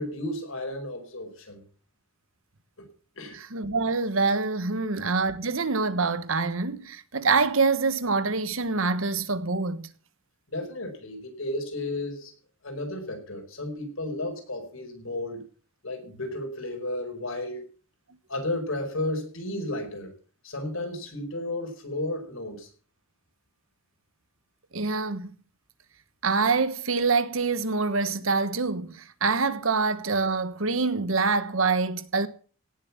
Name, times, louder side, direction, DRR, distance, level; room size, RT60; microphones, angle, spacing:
voice 1, 0.0-1.6 2.8-2.9 3.2-3.4 4.8-4.9 10.5-12.3 12.6-15.4 15.8-17.6 18.3-20.1 20.4-22.7, left 1 dB, 80° left, 5.1 m, -33 dB
voice 2, 3.3-9.9 24.7-25.3 26.2-32.3, right 4 dB, 80° right, 1.3 m, -25 dB
17.5 x 7.5 x 7.2 m
head